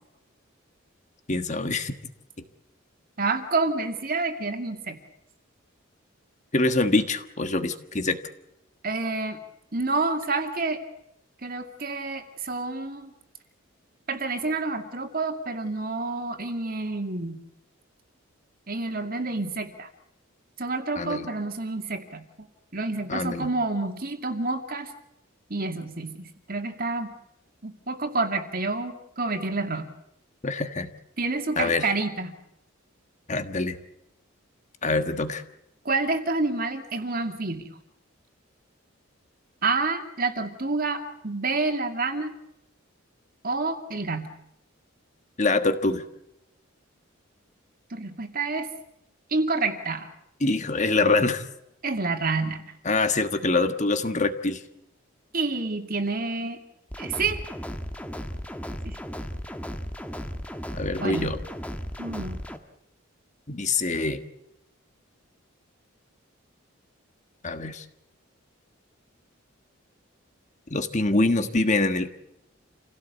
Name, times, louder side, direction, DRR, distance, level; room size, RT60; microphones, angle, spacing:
voice 1, 1.3-1.9 6.5-8.2 20.9-21.3 23.1-23.5 30.4-30.9 31.6-31.9 33.3-33.8 34.8-35.4 45.4-46.0 50.4-51.5 52.8-54.6 60.7-61.4 63.5-64.2 67.4-67.8 70.7-72.1, left 3 dB, 35° left, 9 dB, 1.5 m, -24 dB
voice 2, 3.2-5.0 8.8-9.4 9.7-10.8 11.4-13.1 14.1-17.4 18.7-19.9 20.6-22.5 22.7-24.9 25.5-27.1 27.6-29.9 31.2-32.3 35.8-37.8 39.6-42.3 43.4-44.4 47.9-48.7 49.3-50.1 51.8-52.6 55.3-56.6 57.0-57.4 58.8-59.0 61.0-61.3 62.0-62.4, right 3 dB, 45° right, 6 dB, 2.5 m, -28 dB
sound 1, 56.9-62.6, equal, 5° left, 1.5 m, -35 dB
27.5 x 17.0 x 8.2 m, 0.83 s
head